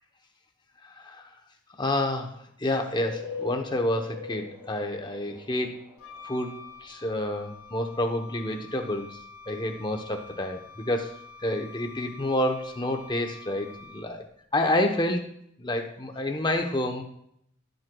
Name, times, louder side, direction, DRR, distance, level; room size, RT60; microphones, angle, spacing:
voice 1, 0.8-1.3 1.8-5.9 6.2-9.2 9.5-11.1 11.4-14.2 14.5-15.3 15.6-17.0, left 1 dB, 20° left, 5 dB, 0.8 m, -29 dB
sound 1, 3.0-6.6, left 5 dB, 10° right, 3.0 m, -40 dB
Wind instrument woodwind instrument, 6.0-14.3, left 5 dB, 75° left, 0.9 m, -47 dB
17.0 x 7.8 x 2.3 m, 0.72 s
head